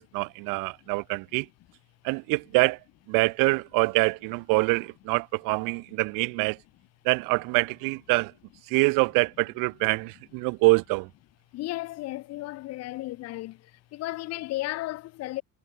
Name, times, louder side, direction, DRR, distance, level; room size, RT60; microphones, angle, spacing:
voice 1, 0.0-1.5 2.0-2.8 3.1-6.6 7.0-8.3 8.7-11.1, right 27 dB, 80° right, 0.7 m, -25 dB
voice 2, 11.5-15.4, left 17 dB, 50° left, 0.7 m, -34 dB
cardioid pair, 160°, 32 cm